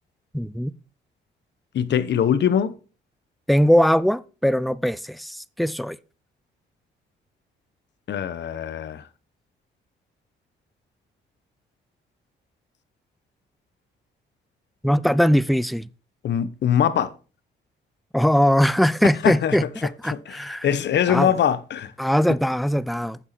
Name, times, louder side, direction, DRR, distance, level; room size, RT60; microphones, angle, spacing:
voice 1, 0.3-0.7 3.5-6.0 14.8-15.9 18.1-20.7 21.1-21.3 22.0-23.2, equal, ahead, 0.4 m, -21 dB
voice 2, 1.7-2.7 8.1-9.1 16.2-17.1 19.2-21.9, left 9 dB, 60° left, 1.1 m, -23 dB
10.5 x 7.1 x 4.3 m
cardioid pair, 90°, 20 cm